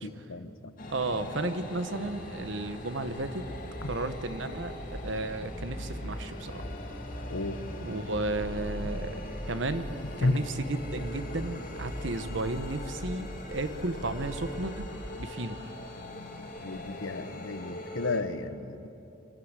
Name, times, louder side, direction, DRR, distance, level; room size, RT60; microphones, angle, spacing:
voice 1, 0.0-0.7 3.8-3.9 7.3-7.6 10.2-10.4 16.6-18.9, left 2 dB, 85° left, 12 dB, 0.9 m, -32 dB
sound 1, 0.8-18.2, left 1 dB, 45° left, 2.2 m, -42 dB
voice 2, 0.9-3.4 3.8-6.7 7.8-9.2 9.5-9.8 10.2-14.9 15.2-15.6, right 2 dB, 65° right, 10 dB, 1.1 m, -33 dB
sound 2, 3.1-15.0, equal, 25° right, 5.6 m, -42 dB
25.5 x 12.5 x 8.2 m, 2.8 s
head